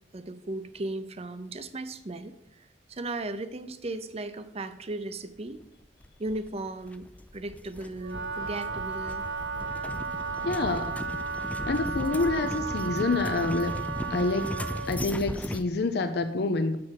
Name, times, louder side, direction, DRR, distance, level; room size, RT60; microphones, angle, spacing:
voice 1, 0.1-5.6 6.2-7.1 7.3-9.2, right 2 dB, 35° right, 11 dB, 0.6 m, -36 dB
sound 1, 6.0-15.6, left 1 dB, 10° left, 0.4 m, -37 dB
Wind instrument woodwind instrument, 8.0-15.0, right 5 dB, 80° right, 0.7 m, -34 dB
voice 2, 10.4-10.9 11.7-13.7 14.1-14.4 14.9-16.8, left 3 dB, 65° left, 8 dB, 0.6 m, -27 dB
7.6 x 6.0 x 6.4 m, 0.80 s
head